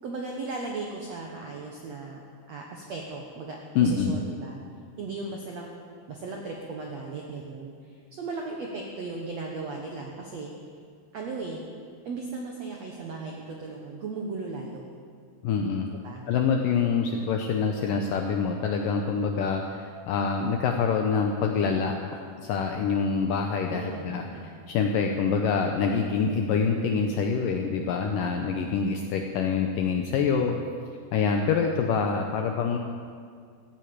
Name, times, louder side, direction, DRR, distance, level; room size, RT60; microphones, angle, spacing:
voice 1, 0.0-2.2 2.5-4.6 5.0-5.7 6.1-10.5 11.1-11.6 12.0-14.8 16.0-16.3 23.7-24.5, right 3 dB, 75° right, 0 dB, 1.5 m, -37 dB
voice 2, 3.8-4.2 15.4-15.9 16.3-24.2 24.7-30.6 31.1-32.8, left 5 dB, 80° left, 3 dB, 2.0 m, -26 dB
15.0 x 9.1 x 8.8 m, 2.1 s
omnidirectional pair, 4.8 m